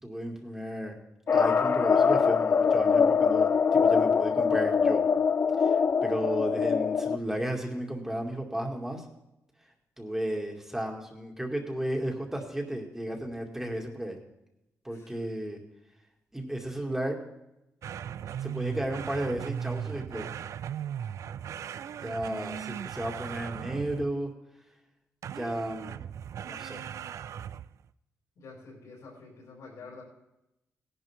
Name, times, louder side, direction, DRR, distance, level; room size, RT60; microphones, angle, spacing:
voice 1, 0.0-1.0 1.3-5.0 5.6-9.0 10.0-14.2 14.8-15.6 16.3-17.2 18.4-20.3 22.0-24.3 25.3-26.0 26.4-26.8, right 1 dB, 10° right, 1 dB, 2.4 m, -34 dB
sound 1, 1.3-7.2, left 6 dB, 40° left, 0.4 m, -23 dB
voice 2, 14.9-15.3 28.4-30.0, left 3 dB, 75° left, -7 dB, 5.3 m, -48 dB
sound 2, 17.8-24.3 25.2-27.8, right 9 dB, 70° right, 0.4 m, -38 dB
17.5 x 11.0 x 3.7 m, 0.88 s
cardioid pair, 110°, 5 cm